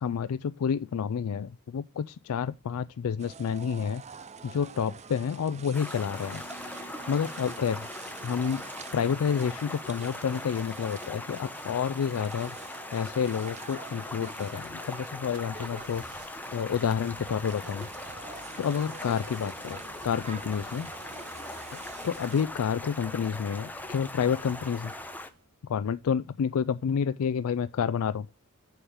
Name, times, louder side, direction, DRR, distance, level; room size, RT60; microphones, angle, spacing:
voice 1, 0.0-4.0 4.4-6.4 7.1-7.9 8.2-8.6 8.9-12.5 12.9-16.2 16.5-17.9 18.6-20.9 21.7-24.9 25.7-28.3, left 7 dB, 75° left, 0.4 m, -29 dB
sound 1, 3.2-22.5, right 5 dB, 30° right, 0.5 m, -47 dB
Stream, 5.7-25.3, left 2 dB, 10° left, 0.8 m, -41 dB
sound 2, 15.3-25.5, right 3 dB, 80° right, 1.5 m, -53 dB
7.1 x 7.0 x 3.6 m
head